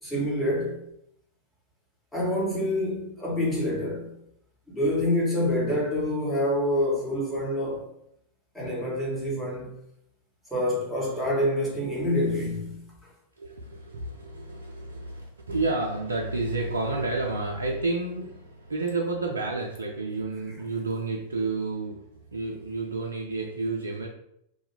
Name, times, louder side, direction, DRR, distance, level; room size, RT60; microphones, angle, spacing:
voice 1, 0.0-0.8 2.1-4.1 4.7-7.9 8.5-9.7 10.5-13.1, left 1 dB, 5° left, 1.1 m, -27 dB
voice 2, 13.4-24.1, right 3 dB, 75° right, 0.3 m, -30 dB
2.4 x 2.1 x 2.9 m
figure-of-eight pair, 90°, 0 cm